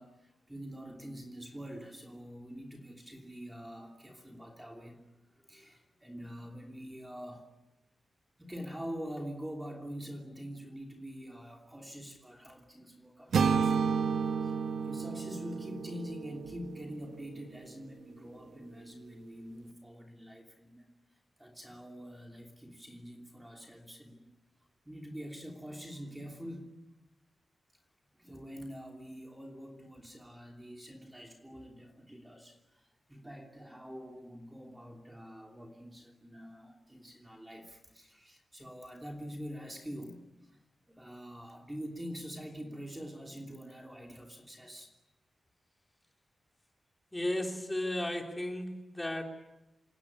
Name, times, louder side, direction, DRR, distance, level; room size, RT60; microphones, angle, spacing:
voice 1, 0.0-5.1 5.4-7.5 8.4-13.9 14.4-24.3 24.8-26.7 28.2-40.5 40.9-44.9, equal, 5° right, 1 dB, 3.0 m, -45 dB
sound 1, 13.3-17.3, right 6 dB, 80° right, 1.4 m, -31 dB
voice 2, 47.1-49.2, left 1 dB, 10° left, 2 dB, 3.3 m, -34 dB
28.0 x 18.5 x 9.7 m, 0.96 s
wide cardioid pair, 160°, 0 cm